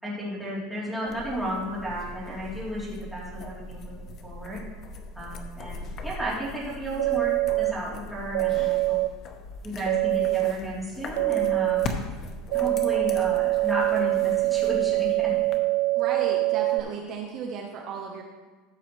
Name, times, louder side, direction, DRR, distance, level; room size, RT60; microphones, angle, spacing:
voice 1, 0.0-4.6 5.1-9.0 9.6-12.0 12.5-15.3, equal, 5° right, -8 dB, 3.1 m, -33 dB
sound 1, 1.1-15.6, left 2 dB, 35° left, 0.9 m, -40 dB
sound 2, 7.0-7.7 8.3-9.1 9.9-10.5 11.1-11.9 12.5-16.8, right 21 dB, 85° right, 0.4 m, -24 dB
voice 2, 16.0-18.2, right 5 dB, 45° right, 1 dB, 0.9 m, -34 dB
14.0 x 6.9 x 3.1 m, 1.4 s
supercardioid pair, 150°, 0 cm